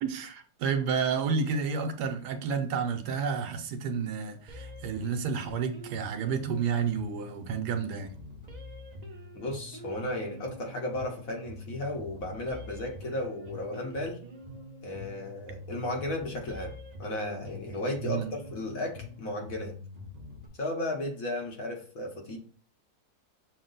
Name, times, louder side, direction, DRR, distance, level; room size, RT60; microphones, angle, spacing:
voice 1, 0.0-8.1 18.0-18.3, right 6 dB, 75° right, 1.2 m, -30 dB
sound 1, 4.5-20.5, left 1 dB, 50° right, 0.5 m, -45 dB
voice 2, 9.3-14.2 14.8-16.7 17.0-19.7 20.6-22.4, left 1 dB, 60° left, 1.3 m, -34 dB
6.4 x 2.1 x 3.8 m
omnidirectional pair, 1.8 m